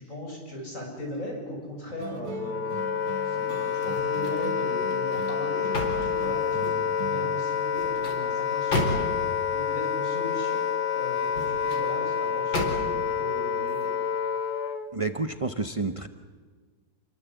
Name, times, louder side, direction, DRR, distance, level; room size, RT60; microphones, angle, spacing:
voice 1, 0.0-2.8 3.2-6.7 7.0-13.9, left 1 dB, 40° left, 0 dB, 7.6 m, -39 dB
sound 1, 2.0-7.4, right 8 dB, 85° right, 2.0 m, -41 dB
Wind instrument woodwind instrument, 2.2-14.9, left 7 dB, 55° left, 1.7 m, -28 dB
sound 2, 3.7-4.5 4.9-6.9 7.6-9.3 11.1-11.9 12.5-13.1 13.6-13.8, left 1 dB, 80° left, 5.0 m, -33 dB
voice 2, 14.9-16.1, right 3 dB, 50° right, 7 dB, 0.4 m, -29 dB
28.0 x 23.0 x 8.4 m, 1.5 s
omnidirectional pair, 2.1 m